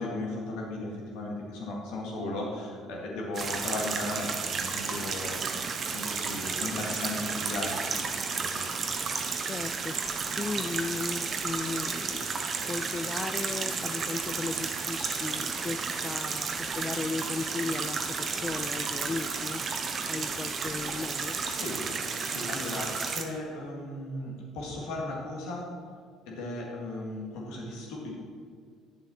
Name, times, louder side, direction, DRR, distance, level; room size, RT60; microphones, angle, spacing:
voice 1, 0.0-5.4 5.9-7.7 8.3-8.7 21.5-21.8 22.2-25.7 26.3-28.1, left 2 dB, 75° left, -2 dB, 2.1 m, -36 dB
sound 1, 3.3-23.2, right 5 dB, 45° right, 1.0 m, -32 dB
voice 2, 9.4-10.0 10.3-12.3 12.6-19.6 20.1-21.4, left 3 dB, 30° left, 13 dB, 0.4 m, -36 dB
9.1 x 7.1 x 4.4 m, 2.1 s
hypercardioid pair, 65°, 0 cm